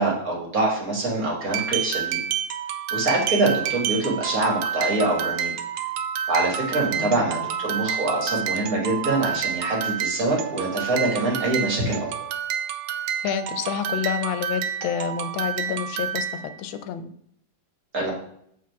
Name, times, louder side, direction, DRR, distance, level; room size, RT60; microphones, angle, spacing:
voice 1, 0.0-2.2 2.9-5.5 6.3-12.0 17.9-18.1, right 2 dB, 50° right, -1 dB, 2.0 m, -24 dB
sound 1, 1.5-16.5, right 9 dB, 75° right, 1.2 m, -29 dB
voice 2, 13.2-16.3 16.6-17.1, left 9 dB, 85° left, 11 dB, 1.4 m, -28 dB
7.6 x 3.8 x 4.6 m, 0.68 s
omnidirectional pair, 2.1 m